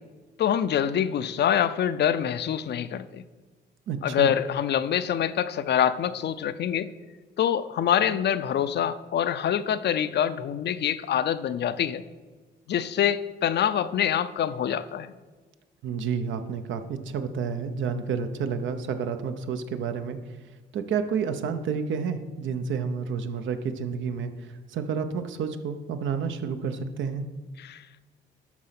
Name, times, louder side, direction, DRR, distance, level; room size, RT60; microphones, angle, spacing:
voice 1, 0.4-3.2 4.0-6.9 7.4-12.0 12.7-15.1 27.6-27.8, left 9 dB, 60° left, 13 dB, 0.6 m, -25 dB
voice 2, 3.9-4.3 15.8-20.2 20.7-27.3, right 6 dB, 75° right, 8 dB, 0.9 m, -30 dB
12.0 x 4.3 x 5.8 m, 1.3 s
cardioid pair, 90°, 20 cm